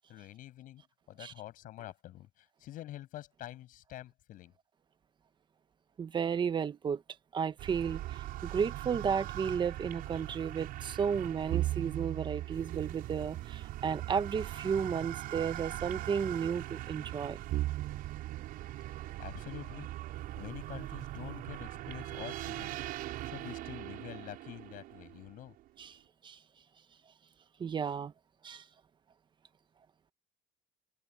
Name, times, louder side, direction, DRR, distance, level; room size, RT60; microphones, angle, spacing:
voice 1, 0.1-4.5 19.2-19.9 20.4-22.8 23.2-25.5, left 14 dB, 55° left, 7.5 m, -47 dB
voice 2, 6.0-7.0 7.3-17.4 25.8-26.0 26.2-26.4 27.6-28.1 28.4-28.6, right 7 dB, 25° right, 1.3 m, -33 dB
sound 1, 7.6-25.5, right 15 dB, 60° right, 6.8 m, -39 dB
cardioid pair, 125°, 17 cm